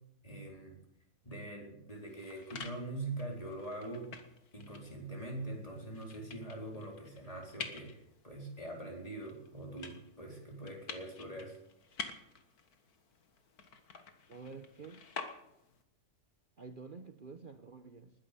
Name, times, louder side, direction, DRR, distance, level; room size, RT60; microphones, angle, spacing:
voice 1, 0.2-0.8 1.2-4.1 4.5-11.6, right 2 dB, 25° left, 0 dB, 4.4 m, -43 dB
sound 1, 1.9-15.8, left 5 dB, 80° left, 2.1 m, -49 dB
voice 2, 14.3-15.0 16.6-18.1, right 4 dB, 40° right, 7 dB, 1.0 m, -49 dB
20.0 x 10.5 x 6.9 m, 0.82 s
omnidirectional pair, 1.6 m